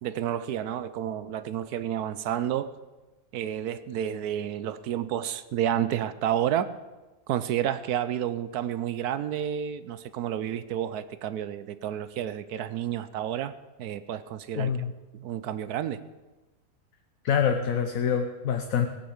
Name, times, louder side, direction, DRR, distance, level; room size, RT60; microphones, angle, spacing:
voice 1, 0.0-2.7 3.3-6.7 7.3-13.5 13.8-14.7 15.1-16.0, right 10 dB, 75° right, 14 dB, 1.1 m, -30 dB
voice 2, 14.5-14.9 17.2-18.9, left 7 dB, 60° left, 6 dB, 1.3 m, -25 dB
17.5 x 9.1 x 7.2 m, 1.2 s
omnidirectional pair, 1.7 m